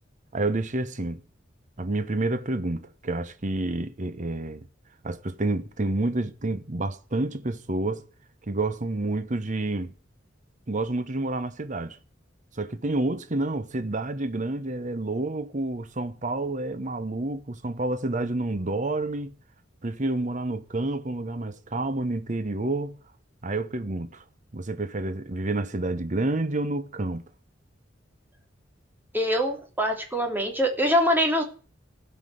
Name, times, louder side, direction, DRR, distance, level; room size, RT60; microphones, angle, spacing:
voice 1, 0.3-1.2 1.8-4.7 5.0-8.0 8.5-9.9 10.7-12.0 12.5-19.3 19.8-23.0 23.4-24.2 24.5-27.2, right 2 dB, 40° right, 1.0 m, -29 dB
voice 2, 29.1-31.4, equal, 10° right, 3.2 m, -24 dB
16.5 x 5.9 x 9.3 m
head